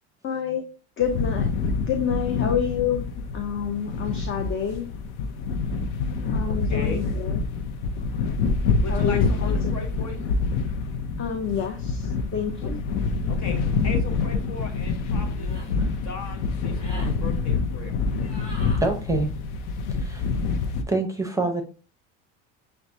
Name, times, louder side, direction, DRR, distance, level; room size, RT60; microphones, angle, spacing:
voice 1, 0.2-0.6 1.0-3.0 3.3-4.9 6.1-7.4 8.9-9.7 11.2-12.8, left 7 dB, 35° left, 4 dB, 0.7 m, -28 dB
sound 1, 1.0-20.8, left 4 dB, 80° left, 0.7 m, -26 dB
voice 2, 6.4-7.1 8.8-10.3 12.6-12.7 13.2-15.7 16.0-17.9, left 3 dB, 50° left, 4 dB, 1.4 m, -37 dB
sound 2, 13.8-14.0 15.3-15.7 16.6-17.1 18.2-18.8, left 1 dB, 20° left, 1.9 m, -43 dB
voice 3, 18.8-19.3 20.0-20.3 20.9-21.6, right 3 dB, 10° right, 4 dB, 0.8 m, -26 dB
6.9 x 2.3 x 2.7 m, 0.36 s
supercardioid pair, 85°, 35 cm